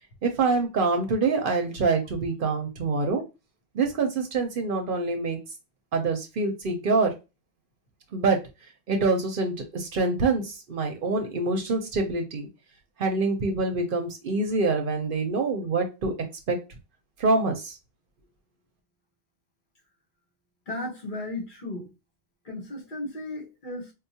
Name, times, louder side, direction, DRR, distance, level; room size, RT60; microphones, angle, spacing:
voice 1, 0.2-3.2 3.7-5.4 5.9-7.1 8.1-8.4 8.9-12.5 13.0-16.1 16.5-16.6 17.2-17.8, right 3 dB, 60° right, 0.8 m, -25 dB
voice 2, 20.7-21.9 22.4-23.9, left 1 dB, 50° left, 1.1 m, -35 dB
4.6 x 2.0 x 2.7 m
omnidirectional pair, 1.1 m